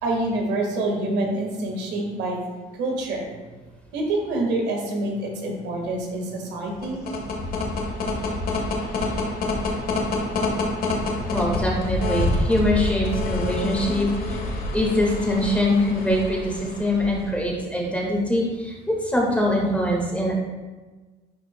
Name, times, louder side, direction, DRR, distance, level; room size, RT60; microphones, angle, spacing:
voice 1, 0.0-2.4 2.8-3.3 3.9-7.0, right 2 dB, 85° right, 0 dB, 1.6 m, -26 dB
sound 1, 6.7-17.5, left 2 dB, 60° left, 1.4 m, -27 dB
voice 2, 11.3-14.4 14.7-20.4, left 1 dB, 10° left, -2 dB, 1.6 m, -23 dB
10.5 x 4.9 x 2.2 m, 1.3 s
cardioid pair, 110°, 17 cm